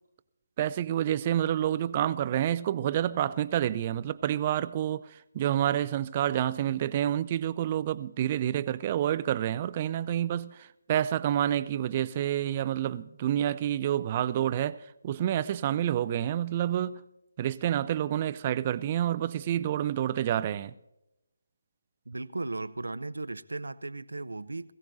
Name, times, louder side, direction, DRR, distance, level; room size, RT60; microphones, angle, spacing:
voice 1, 0.6-14.8 15.0-17.0 17.4-20.7, right 11 dB, 30° right, 0.4 m, -28 dB
voice 2, 22.1-24.7, right 2 dB, 85° right, 0.6 m, -36 dB
21.5 x 15.5 x 2.7 m
figure-of-eight pair, 160°, 0 cm